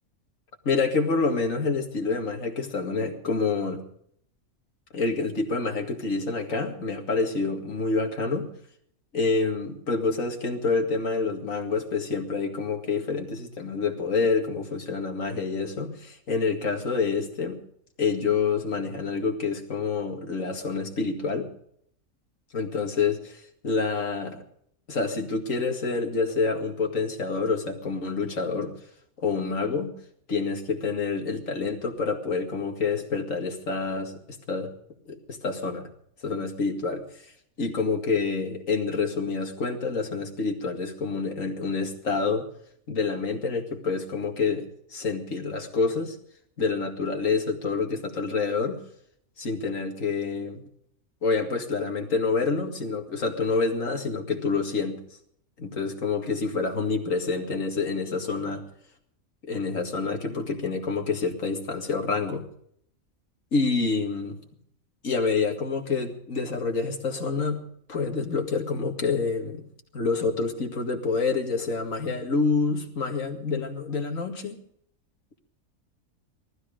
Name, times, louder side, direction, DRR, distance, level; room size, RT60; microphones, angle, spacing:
voice 1, 0.6-3.8 4.9-8.5 9.1-17.6 18.0-21.5 22.5-24.4 24.9-28.7 29.2-29.9 30.3-34.1 34.5-34.7 35.1-35.9 36.2-37.0 37.6-42.5 42.9-46.2 46.6-48.8 49.4-50.6 51.2-55.0 55.6-58.6 59.5-62.4 63.5-64.4 65.0-67.6 67.9-69.6 69.9-74.6, left 4 dB, 70° left, 3 dB, 2.6 m, -27 dB
19.0 x 13.5 x 5.1 m, 0.66 s
omnidirectional pair, 1.4 m